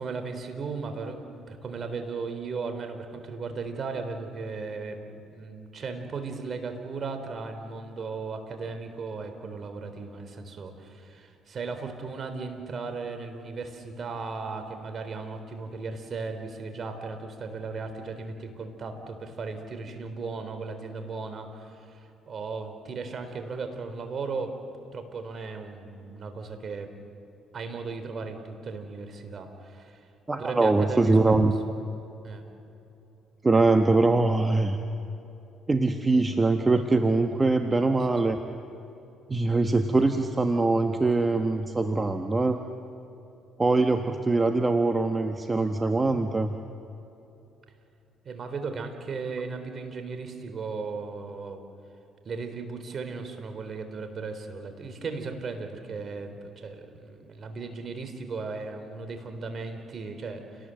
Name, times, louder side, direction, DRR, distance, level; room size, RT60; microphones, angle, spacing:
voice 1, 0.0-24.6 24.9-26.9 27.5-30.0 30.4-31.5 32.2-32.4 38.1-38.4 48.2-51.6 52.3-60.7, right 4 dB, 50° right, 7 dB, 3.8 m, -36 dB
voice 2, 30.3-31.5 33.4-34.8 35.7-38.4 39.3-42.6 43.6-46.5, right 3 dB, 20° right, 6 dB, 1.3 m, -23 dB
29.5 x 19.0 x 7.8 m, 2.8 s
supercardioid pair, 75°, 0 cm